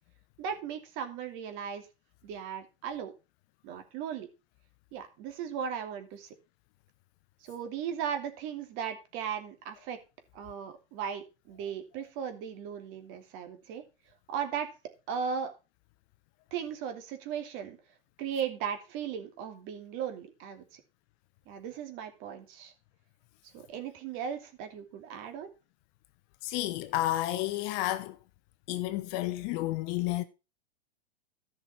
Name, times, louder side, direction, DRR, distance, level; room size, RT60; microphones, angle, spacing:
voice 1, 0.4-1.9 2.2-3.1 3.6-4.3 4.9-6.3 7.4-10.0 10.3-13.8 14.3-14.7 15.1-15.5 16.5-17.8 18.2-20.8 21.5-22.7 23.5-25.5, right 7 dB, 40° right, 2.7 m, -37 dB
voice 2, 26.4-28.2 28.7-30.2, left 16 dB, 35° left, 0.9 m, -31 dB
14.5 x 6.1 x 4.1 m
hypercardioid pair, 135°, 31 cm